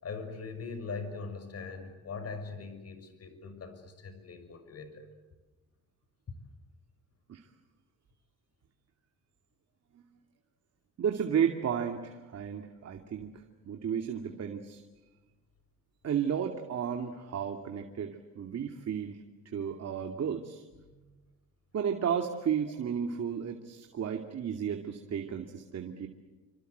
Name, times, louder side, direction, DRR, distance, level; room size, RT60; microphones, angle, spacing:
voice 1, 0.0-5.1 20.8-21.1, left 4 dB, 55° left, 9 dB, 6.4 m, -41 dB
voice 2, 11.0-13.3 13.7-14.8 16.0-19.2 19.5-20.6 21.7-26.1, right 8 dB, 55° right, 4 dB, 2.6 m, -33 dB
28.5 x 25.5 x 8.1 m, 1.2 s
cardioid pair, 90°, 30 cm